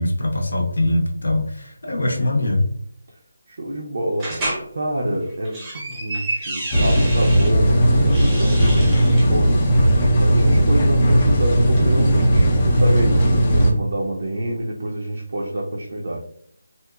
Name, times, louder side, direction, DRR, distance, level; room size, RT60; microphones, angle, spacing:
voice 1, 0.0-2.6, left 1 dB, 75° left, 1 dB, 0.6 m, -22 dB
voice 2, 3.5-4.5 4.7-16.2, right 1 dB, 55° right, -2 dB, 0.4 m, -27 dB
sound 1, 4.2-4.6 5.3-7.5 8.0-9.3, right 1 dB, 15° right, 0.6 m, -30 dB
sound 2, 6.7-13.7, right 1 dB, 30° left, 0.5 m, -16 dB
2.9 x 2.0 x 2.3 m, 0.66 s
figure-of-eight pair, 160°, 0 cm